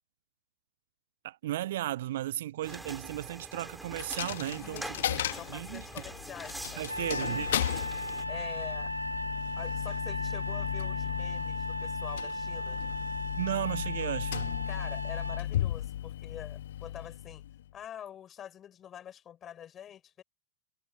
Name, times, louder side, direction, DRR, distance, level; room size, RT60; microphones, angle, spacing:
voice 1, 1.2-4.8 5.1-5.2 5.5-5.9 6.8-7.5 13.4-14.5, right 14 dB, 55° right, 0.5 m, -35 dB
sound 1, 2.6-8.2, right 1 dB, 5° right, 7.2 m, -44 dB
Coin (dropping), 4.0-17.7, left 12 dB, 60° left, 2.0 m, -36 dB
voice 2, 4.7-7.3 8.3-8.9 9.6-12.8 14.0-14.1 14.7-17.4 17.7-20.2, left 10 dB, 25° left, 6.4 m, -46 dB
Trumpet, 6.9-15.4, equal, 90° left, 0.3 m, -37 dB
figure-of-eight pair, 90°, 0 cm